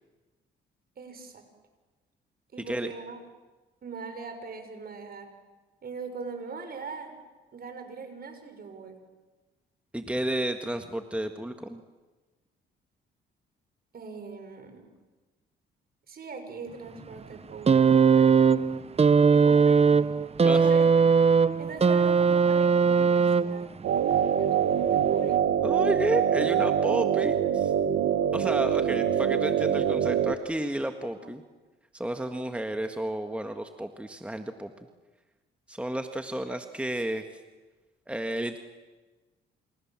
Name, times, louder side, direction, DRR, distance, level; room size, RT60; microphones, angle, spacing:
voice 1, 1.0-1.4 2.5-3.2 3.8-5.3 5.8-7.1 7.5-9.0 13.9-14.9 16.1-18.7 19.3-20.1 20.6-20.9 21.6-23.6 24.4-25.3 31.2-31.3, right 5 dB, 50° right, 6 dB, 6.3 m, -41 dB
voice 2, 9.9-11.8 20.4-20.6 23.0-23.1 25.6-27.7 28.3-31.4 31.9-34.7 35.7-37.3 38.1-38.6, right 1 dB, 5° right, 6 dB, 1.6 m, -31 dB
sound 1, 17.7-23.8 24.9-25.0, right 5 dB, 30° right, 1.0 m, -20 dB
sound 2, 23.8-30.3, right 9 dB, 75° right, 1.4 m, -24 dB
28.5 x 28.0 x 7.5 m, 1.2 s
cardioid pair, 90°, 20 cm